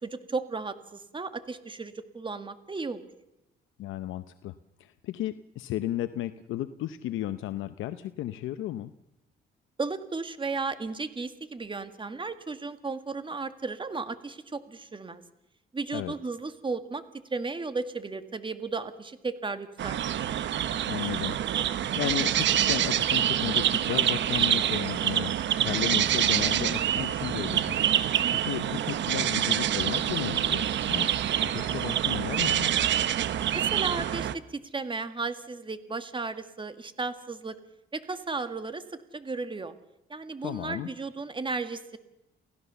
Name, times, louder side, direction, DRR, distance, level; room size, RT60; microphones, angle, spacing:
voice 1, 0.0-3.1 9.8-15.2 15.7-17.0 17.3-20.0 33.5-37.5 37.9-38.8 39.1-39.7 40.1-42.0, right 4 dB, 25° right, 10 dB, 1.8 m, -34 dB
voice 2, 3.8-4.5 4.8-8.9 15.9-16.1 20.9-21.4 21.7-25.3 25.6-27.8 28.4-31.1 31.5-32.8 40.4-40.9, left 13 dB, 85° left, 11 dB, 0.8 m, -34 dB
sound 1, 19.8-34.4, right 10 dB, 65° right, 1.0 m, -26 dB
28.5 x 16.0 x 6.9 m, 0.91 s
cardioid pair, 90°, 20 cm